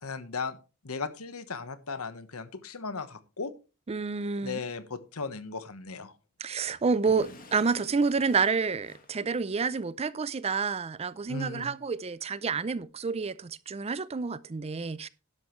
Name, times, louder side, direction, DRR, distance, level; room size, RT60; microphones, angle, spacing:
voice 1, 0.0-0.6 0.8-3.5 4.4-6.1 11.3-11.7, left 4 dB, 80° left, 1.2 m, -36 dB
voice 2, 3.9-4.6 6.4-15.1, right 5 dB, 30° right, 0.4 m, -29 dB
Explosion / Shatter, 7.0-9.8, left 2 dB, 40° left, 1.9 m, -51 dB
12.0 x 11.0 x 3.1 m
head